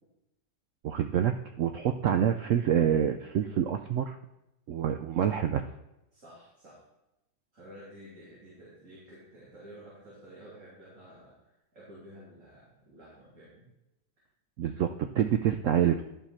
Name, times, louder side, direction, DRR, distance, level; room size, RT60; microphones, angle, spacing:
voice 1, 0.8-4.2 4.7-5.6 14.6-16.0, right 9 dB, 90° right, 6 dB, 0.6 m, -27 dB
voice 2, 6.1-6.8 7.5-13.7, equal, 45° right, -8 dB, 3.2 m, -51 dB
11.5 x 5.6 x 4.3 m, 0.93 s
omnidirectional pair, 1.9 m